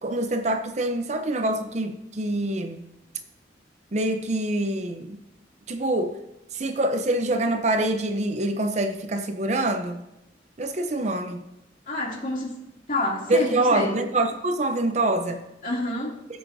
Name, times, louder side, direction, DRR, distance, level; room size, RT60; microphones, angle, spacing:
voice 1, 0.0-2.8 3.9-5.2 5.7-6.2 6.5-10.0 10.6-11.4 13.3-15.4, right 1 dB, 40° right, 7 dB, 0.6 m, -25 dB
voice 2, 11.9-12.6 12.9-14.0 15.6-16.2, left 1 dB, 45° left, -4 dB, 2.7 m, -28 dB
15.5 x 7.5 x 2.7 m, 0.93 s
head